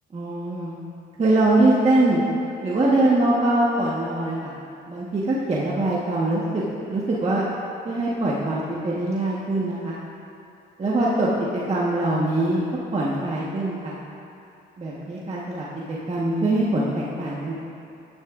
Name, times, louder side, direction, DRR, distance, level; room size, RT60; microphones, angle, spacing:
voice 1, 0.1-0.8 1.2-2.2 2.6-4.5 4.9-7.4 7.8-10.0 10.8-12.6 12.9-13.9 14.8-17.5, right 2 dB, 35° right, -7 dB, 1.5 m, -23 dB
13.5 x 10.0 x 2.6 m, 2.6 s
cardioid pair, 80°, 19 cm